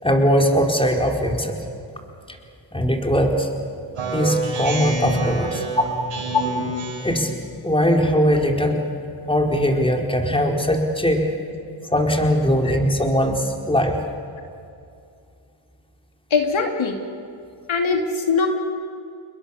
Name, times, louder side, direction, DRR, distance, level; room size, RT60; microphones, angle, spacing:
voice 1, 0.0-1.6 2.3-2.4 2.7-3.5 4.1-5.9 7.0-7.4 7.6-8.8 9.3-11.3 11.9-14.0, equal, 10° left, 1 dB, 4.3 m, -20 dB
Speech synthesizer, 3.9-7.3, right 3 dB, 80° right, 5.2 m, -27 dB
voice 2, 16.3-17.0 17.7-18.5, left 5 dB, 70° left, 3 dB, 2.8 m, -21 dB
30.0 x 21.5 x 7.1 m, 2.5 s
cardioid pair, 75°, 50 cm